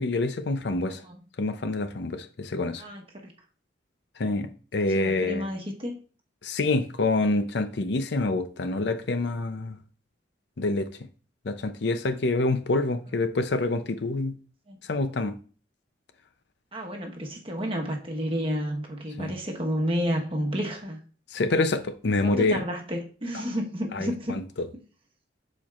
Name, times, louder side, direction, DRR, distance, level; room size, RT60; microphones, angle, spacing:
voice 1, 0.0-1.0 1.4-2.8 4.2-5.5 6.4-9.8 10.6-10.9 11.4-14.4 14.9-15.3 19.2-19.3 21.3-22.6 23.9-24.4, left 2 dB, 60° left, 0.6 m, -26 dB
voice 2, 0.9-1.2 2.8-3.3 4.8-6.0 14.7-14.8 16.7-21.0 22.2-24.4, equal, 30° right, 1.1 m, -31 dB
12.0 x 4.5 x 2.4 m
head